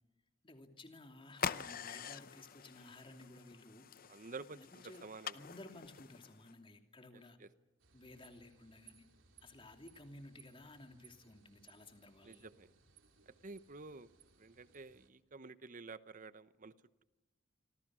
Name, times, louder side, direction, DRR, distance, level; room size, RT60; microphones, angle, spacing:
voice 1, 0.4-3.9 4.5-5.1 5.3-7.4 7.9-9.1 9.4-12.5, left 2 dB, 25° left, 5 dB, 2.8 m, -55 dB
sound 1, 1.3-6.5, left 7 dB, 45° left, 0.8 m, -45 dB
voice 2, 4.1-4.6 5.0-5.4 7.1-7.5 12.2-12.7 13.3-14.1 14.4-16.7, right 3 dB, 45° right, 14 dB, 0.9 m, -50 dB
sound 2, 7.8-15.1, right 7 dB, 80° right, 2.9 m, -66 dB
27.0 x 26.0 x 6.3 m, 1.1 s
head